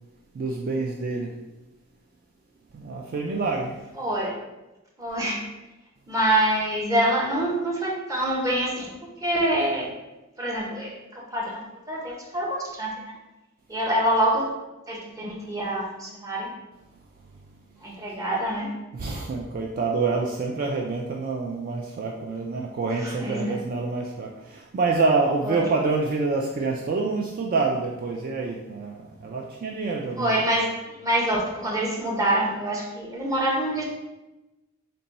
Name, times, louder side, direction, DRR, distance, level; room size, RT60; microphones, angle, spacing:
voice 1, 0.3-1.3 2.7-3.8 18.9-30.5, right 3 dB, 45° right, 0 dB, 0.3 m, -27 dB
voice 2, 4.0-4.4 5.0-5.4 6.1-8.9 9.2-9.9 10.4-13.1 13.7-14.5 14.9-16.5 17.8-18.7 23.0-23.6 25.4-25.6 30.2-30.7 31.0-33.8, right 1 dB, 15° right, -3 dB, 0.8 m, -26 dB
4.0 x 2.2 x 4.0 m, 1.0 s
head